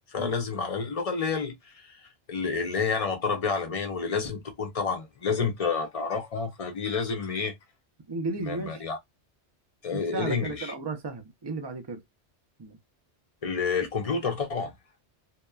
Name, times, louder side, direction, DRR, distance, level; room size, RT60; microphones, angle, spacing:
voice 1, 0.1-7.6 8.4-9.0 9.8-10.7 13.4-14.7, left 5 dB, 40° left, 0.6 m, -29 dB
voice 2, 8.1-8.8 9.9-12.0 12.6-12.8, right 3 dB, 35° right, 0.4 m, -34 dB
2.8 x 2.1 x 2.2 m
omnidirectional pair, 1.2 m